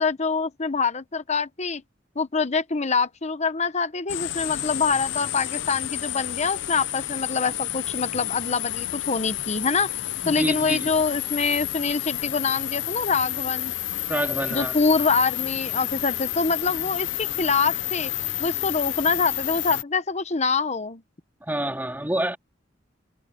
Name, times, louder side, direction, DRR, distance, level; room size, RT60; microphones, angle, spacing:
voice 1, 0.0-1.8 2.1-9.9 10.3-13.7 14.5-18.1 18.4-21.0, left 4 dB, 35° left, 1.0 m, -25 dB
sound 1, 4.1-19.8, left 13 dB, 75° left, 0.7 m, -30 dB
voice 2, 10.2-10.9 14.1-14.8 21.4-22.4, right 1 dB, 10° right, 2.3 m, -27 dB
head